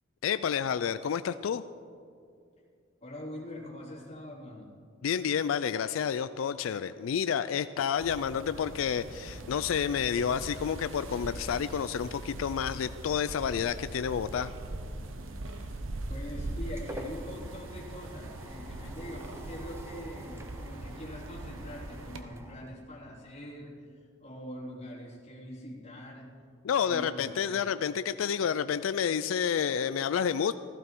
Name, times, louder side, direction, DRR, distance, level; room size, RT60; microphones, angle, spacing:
voice 1, 0.2-1.6 5.0-14.5 26.6-30.5, left 7 dB, 90° left, 13 dB, 0.4 m, -30 dB
voice 2, 3.0-4.7 15.5-15.8 16.1-26.3 26.8-27.3, left 1 dB, 35° left, -4 dB, 3.2 m, -43 dB
sound 1, 8.0-22.2, right 2 dB, 80° right, 1.0 m, -41 dB
sound 2, 16.4-23.4, equal, 15° right, 0.9 m, -48 dB
15.5 x 14.5 x 4.6 m, 2.3 s
head